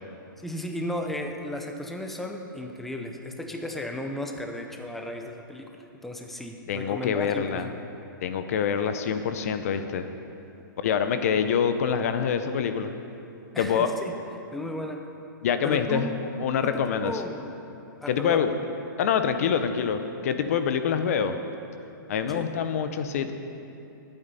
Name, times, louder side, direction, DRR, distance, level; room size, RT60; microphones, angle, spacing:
voice 1, 0.4-7.8 13.5-14.1 14.5-15.0 15.6-16.2 16.6-17.5 18.0-18.4 22.3-22.5, left 1 dB, ahead, 3 dB, 0.5 m, -35 dB
voice 2, 6.7-7.7 8.2-10.1 10.8-12.9 13.6-13.9 15.4-16.1 16.4-17.1 18.1-18.6 19.0-21.4 22.1-23.3, left 7 dB, 45° left, 9 dB, 0.7 m, -25 dB
20.0 x 8.9 x 4.1 m, 2.8 s
hypercardioid pair, 170°, 11 cm